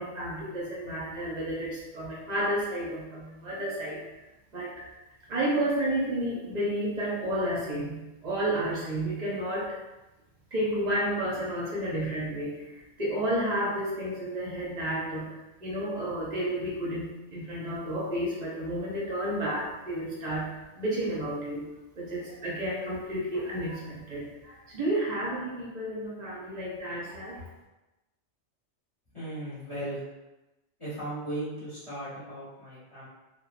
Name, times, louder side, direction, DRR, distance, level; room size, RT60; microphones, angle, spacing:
voice 1, 0.0-4.0 4.5-4.8 5.3-9.8 10.5-15.3 15.6-20.5 20.8-27.4, right 1 dB, 45° right, -5 dB, 0.6 m, -31 dB
voice 2, 29.1-30.0 30.8-33.1, right 1 dB, 25° left, -11 dB, 1.0 m, -37 dB
2.9 x 2.1 x 2.4 m, 1.0 s
omnidirectional pair, 1.2 m